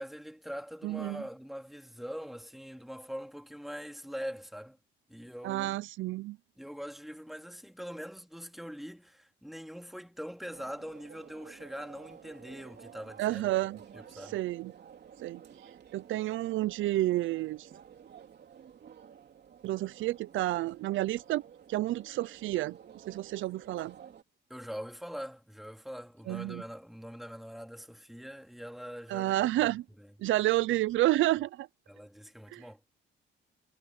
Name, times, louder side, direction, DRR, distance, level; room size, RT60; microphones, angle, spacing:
voice 1, 0.0-4.8 5.1-5.8 6.6-13.7 13.9-14.4 24.5-30.3 31.9-32.8, equal, ahead, 2.7 m, -43 dB
voice 2, 0.8-1.2 5.4-6.4 13.2-13.8 14.3-14.7 15.2-15.4 15.9-17.7 19.6-21.4 21.7-22.8 23.1-23.9 26.3-26.6 29.1-29.8 30.2-31.7 32.5-32.6, right 16 dB, 80° right, 0.5 m, -30 dB
sound 1, 10.5-24.2, right 8 dB, 55° right, 3.3 m, -52 dB
cardioid pair, 90°, 20 cm